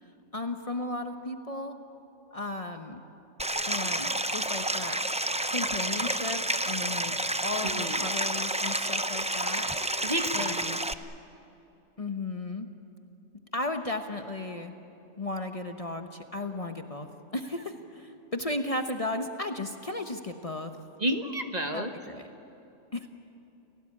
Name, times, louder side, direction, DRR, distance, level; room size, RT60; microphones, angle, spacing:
voice 1, 0.0-1.8 2.3-3.0 3.7-5.0 5.5-7.1 7.4-9.7 10.3-10.5 12.0-12.7 13.5-14.7 15.2-17.1 17.3-20.7 21.7-22.3 22.9-23.1, left 2 dB, 30° left, 5 dB, 1.1 m, -35 dB
Stream, 3.4-10.9, right 1 dB, 10° right, 0.4 m, -30 dB
voice 2, 7.6-8.1 10.0-10.8 21.0-21.9, right 1 dB, 35° right, 5 dB, 1.4 m, -31 dB
29.5 x 18.0 x 8.7 m, 2.9 s
omnidirectional pair, 1.2 m